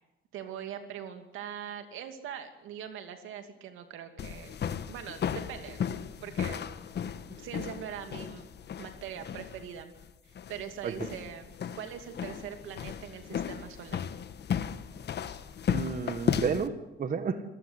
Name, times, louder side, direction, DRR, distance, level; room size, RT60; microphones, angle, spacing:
voice 1, 0.3-5.8 6.2-6.6 7.3-8.5 8.8-9.9 10.2-14.1, right 9 dB, 90° right, 7 dB, 2.6 m, -42 dB
sound 1, 4.2-16.7, left 8 dB, 60° left, 1.4 m, -35 dB
voice 2, 15.7-17.4, right 6 dB, 45° right, 9 dB, 1.6 m, -32 dB
28.5 x 15.0 x 8.2 m, 0.99 s
cardioid pair, 90°, 20 cm